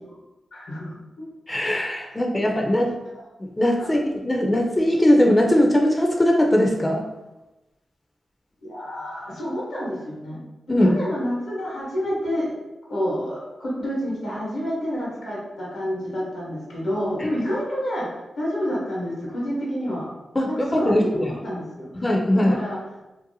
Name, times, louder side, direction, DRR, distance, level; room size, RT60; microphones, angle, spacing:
voice 1, 0.5-0.9 2.6-2.9 3.8-3.9 8.6-12.6 12.9-20.1 20.4-22.0 22.3-22.8, equal, 85° left, -5 dB, 1.0 m, -29 dB
voice 2, 1.5-3.0 3.4-7.1 10.7-11.0 20.3-21.2 22.0-22.6, left 1 dB, 25° left, 1 dB, 0.4 m, -20 dB
2.6 x 2.1 x 2.7 m, 1.0 s
supercardioid pair, 40°, 0 cm